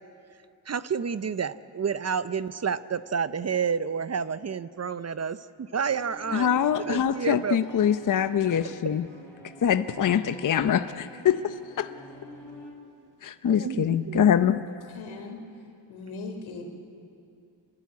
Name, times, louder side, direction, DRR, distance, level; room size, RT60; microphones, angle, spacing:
voice 1, 0.7-6.5 6.8-7.9 8.8-9.0 13.5-14.2, right 6 dB, 35° right, 14 dB, 0.7 m, -30 dB
sound 1, 6.0-12.7, left 1 dB, 5° left, 6.4 m, -47 dB
voice 2, 6.3-9.0 9.6-11.9 13.2-14.6, left 9 dB, 45° left, 10 dB, 0.8 m, -24 dB
voice 3, 14.9-15.4 15.9-16.6, left 4 dB, 90° left, 4 dB, 3.6 m, -38 dB
27.0 x 21.0 x 8.5 m, 2.5 s
cardioid pair, 95°, 46 cm